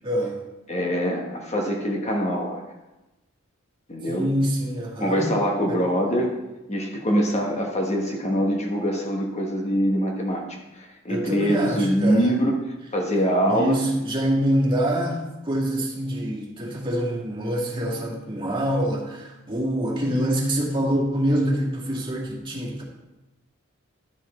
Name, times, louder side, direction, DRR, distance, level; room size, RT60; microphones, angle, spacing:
voice 1, 0.0-0.4 4.0-5.3 5.7-5.8 11.1-12.3 13.5-22.8, equal, 25° right, -4 dB, 2.1 m, -25 dB
voice 2, 0.7-2.6 3.9-4.3 5.0-6.3 6.7-10.4 10.8-12.6 12.9-13.8, equal, 35° left, 0 dB, 1.3 m, -24 dB
12.0 x 6.4 x 4.3 m, 1.0 s
head